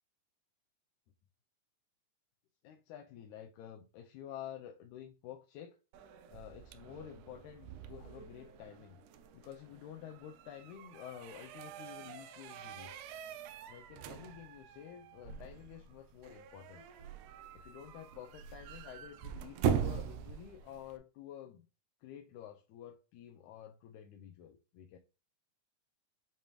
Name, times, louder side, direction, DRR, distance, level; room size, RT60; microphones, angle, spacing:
voice 1, 2.6-5.8 6.3-9.0 9.3-13.1 13.7-16.8 17.5-21.7 22.0-25.0, left 10 dB, 85° left, 2.0 m, -50 dB
sound 1, 5.9-21.0, right 7 dB, 85° right, 2.0 m, -42 dB
6.9 x 3.2 x 2.4 m
omnidirectional pair, 3.4 m